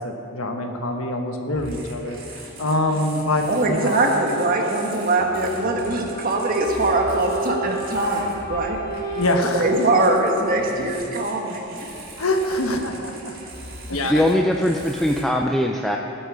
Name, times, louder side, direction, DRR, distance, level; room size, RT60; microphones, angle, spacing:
voice 1, 0.0-4.0 9.1-9.7 12.2-13.3 13.9-14.3, left 1 dB, 90° left, 4 dB, 1.3 m, -25 dB
sound 1, 1.5-15.2, right 1 dB, 60° right, 3.4 m, -40 dB
voice 2, 3.5-8.8 9.5-11.9, right 2 dB, 45° right, 1 dB, 1.5 m, -22 dB
Wind instrument woodwind instrument, 6.1-10.7, right 2 dB, 20° left, 1.7 m, -31 dB
voice 3, 14.1-16.0, equal, ahead, 1 dB, 0.4 m, -21 dB
18.0 x 7.7 x 5.0 m, 2.9 s
head